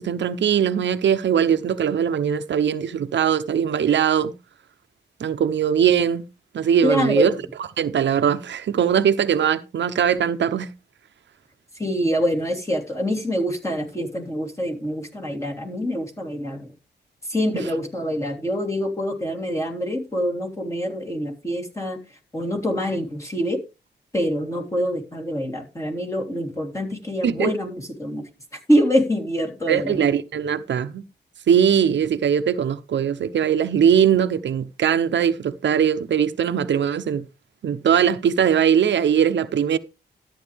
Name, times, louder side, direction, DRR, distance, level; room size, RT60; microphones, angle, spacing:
voice 1, 0.0-4.3 5.2-6.3 6.5-7.3 7.8-10.7 27.2-27.5 29.7-31.0 31.5-37.3 37.6-39.8, right 8 dB, 80° right, 0.8 m, -20 dB
voice 2, 6.8-7.4 11.8-16.7 17.3-22.0 22.3-23.6 24.1-28.3 28.7-30.0, equal, 15° left, 3.4 m, -25 dB
13.0 x 9.2 x 3.5 m
wide cardioid pair, 120°, 18 cm